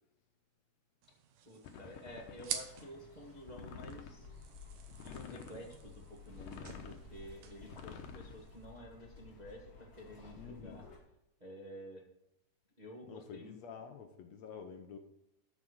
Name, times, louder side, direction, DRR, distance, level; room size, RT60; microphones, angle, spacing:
sound 1, 1.0-8.7, right 8 dB, 85° right, 2.7 m, -49 dB
voice 1, 1.4-4.3 5.0-10.9 11.4-12.0 12.8-13.6, equal, 70° right, -1 dB, 0.4 m, -51 dB
sound 2, 1.6-2.8 3.5-4.2 4.9-5.7 6.3-7.1 7.6-8.3, left 7 dB, 90° left, 2.5 m, -49 dB
sound 3, 2.1-11.0, left 4 dB, 45° left, 5.5 m, -55 dB
voice 2, 10.4-10.9 13.1-15.0, left 6 dB, 70° left, 5 dB, 1.8 m, -49 dB
13.0 x 5.0 x 6.5 m, 0.81 s
omnidirectional pair, 3.7 m